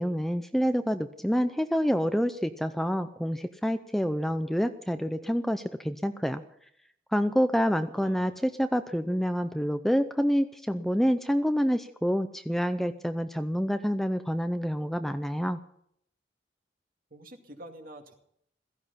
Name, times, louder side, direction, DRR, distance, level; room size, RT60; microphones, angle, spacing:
voice 1, 0.0-6.4 7.1-15.6, equal, ahead, 9 dB, 0.6 m, -27 dB
voice 2, 8.0-8.3 17.1-18.1, right 1 dB, 50° right, 4 dB, 2.4 m, -47 dB
16.5 x 15.5 x 5.7 m, 0.68 s
head